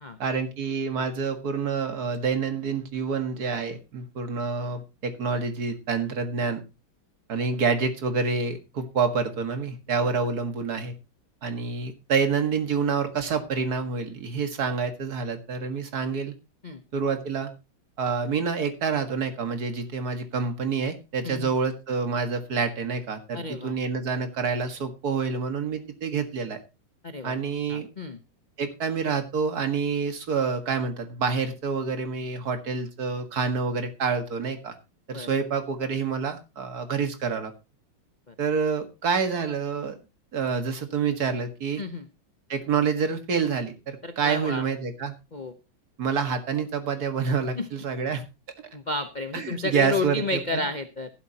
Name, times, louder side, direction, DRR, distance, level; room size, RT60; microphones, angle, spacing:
voice 1, 0.2-6.6 7.3-11.0 11.4-16.3 16.9-17.5 18.0-26.6 27.2-27.9 28.6-34.8 35.1-37.5 38.4-40.0 40.3-41.8 42.5-45.1 46.0-48.2 49.3-50.7, right 5 dB, 50° right, 7 dB, 2.1 m, -27 dB
voice 2, 21.2-21.6 23.3-23.8 27.0-27.4 27.7-28.2 35.1-35.3 38.3-38.4 41.8-42.1 44.0-44.6 45.3-45.5 47.5-47.7 48.7-51.1, left 3 dB, 40° left, 8 dB, 0.6 m, -31 dB
15.0 x 12.0 x 2.9 m, 0.27 s
omnidirectional pair, 2.2 m